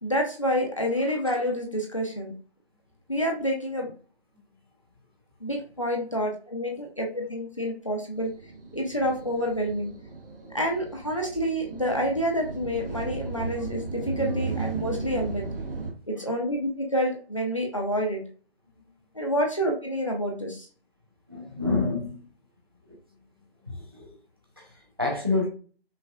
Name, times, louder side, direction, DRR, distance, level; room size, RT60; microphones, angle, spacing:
voice 1, 0.0-2.3 3.1-3.9 5.4-8.3 8.7-9.9 10.5-15.5 16.1-18.2 19.1-20.7, equal, 30° left, 0.6 m, -28 dB
sound 1, 8.2-15.9, right 4 dB, 60° right, 1.1 m, -35 dB
voice 2, 21.3-22.2 22.9-23.0 23.7-24.1 24.6-24.7 25.0-25.5, left 3 dB, 25° right, 0.6 m, -28 dB
5.4 x 2.4 x 2.3 m
figure-of-eight pair, 165°, 31 cm